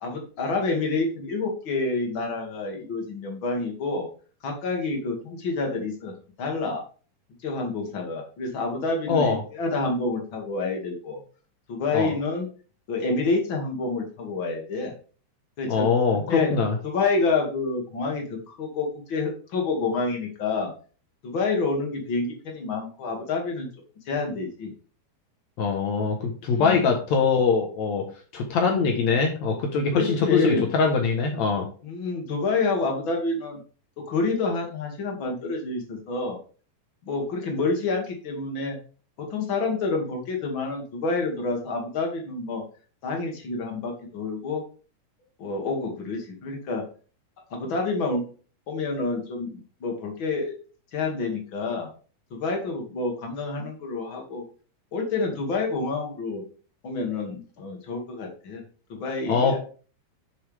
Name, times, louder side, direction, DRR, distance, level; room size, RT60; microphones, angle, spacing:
voice 1, 0.0-4.1 4.4-6.1 6.4-6.8 7.4-11.2 11.7-12.5 12.9-14.9 15.6-15.9 16.3-16.5 16.8-20.7 21.2-23.7 24.1-24.7 26.5-26.9 29.9-30.7 31.8-33.6 34.1-36.4 37.0-38.8 39.2-42.6 43.0-44.6 45.4-46.8 47.5-48.2 48.7-50.5 50.9-51.9 52.3-54.4 54.9-56.4 56.8-58.6 58.9-59.6, left 3 dB, 40° left, 1 dB, 2.1 m, -28 dB
voice 2, 9.1-9.4 11.9-12.1 15.7-16.7 25.6-28.0 28.3-31.6 59.3-59.6, left 5 dB, 80° left, 3 dB, 1.6 m, -23 dB
11.5 x 6.5 x 3.5 m, 0.39 s
omnidirectional pair, 5.1 m